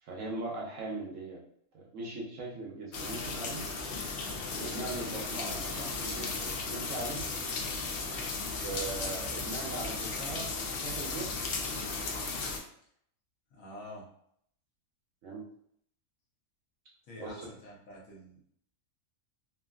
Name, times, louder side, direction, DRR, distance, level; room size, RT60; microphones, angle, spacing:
voice 1, 0.0-1.4 1.7-3.6 4.5-7.2 8.6-12.2 15.2-15.4 17.2-17.4, right 3 dB, 65° right, -2 dB, 1.0 m, -40 dB
sound 1, 2.9-12.6, left 4 dB, 90° left, 0.5 m, -35 dB
voice 2, 13.5-14.1 17.0-18.4, left 1 dB, 65° left, -3 dB, 1.2 m, -47 dB
3.0 x 2.5 x 2.3 m, 0.67 s
omnidirectional pair, 1.6 m